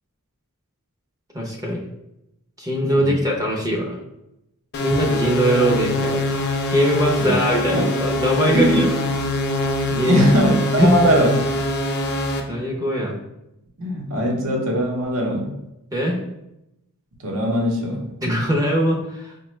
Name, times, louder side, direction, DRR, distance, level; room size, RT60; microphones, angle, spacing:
voice 1, 1.3-1.8 2.6-4.0 4.8-8.9 9.9-10.2 10.8-10.9 12.5-13.2 15.9-16.2 18.2-19.3, equal, 15° right, -1 dB, 0.6 m, -21 dB
sound 1, 4.7-12.4, left 1 dB, 50° left, 0.5 m, -24 dB
voice 2, 10.0-11.4 13.8-15.6 17.2-18.1, equal, 70° right, 1 dB, 0.8 m, -20 dB
5.0 x 2.2 x 3.0 m, 0.86 s
head